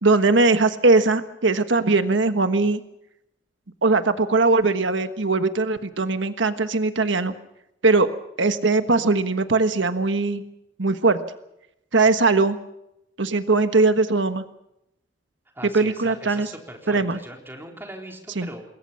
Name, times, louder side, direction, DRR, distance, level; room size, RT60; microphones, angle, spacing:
voice 1, 0.0-2.8 3.8-7.3 7.8-8.1 8.4-10.4 10.8-11.2 11.9-12.6 13.2-14.4 15.6-16.5 16.9-17.2 18.4-18.5, right 3 dB, 90° right, 9 dB, 1.4 m, -20 dB
voice 2, 15.5-18.7, right 1 dB, 10° right, 2 dB, 3.9 m, -40 dB
27.5 x 21.0 x 5.8 m, 0.82 s
head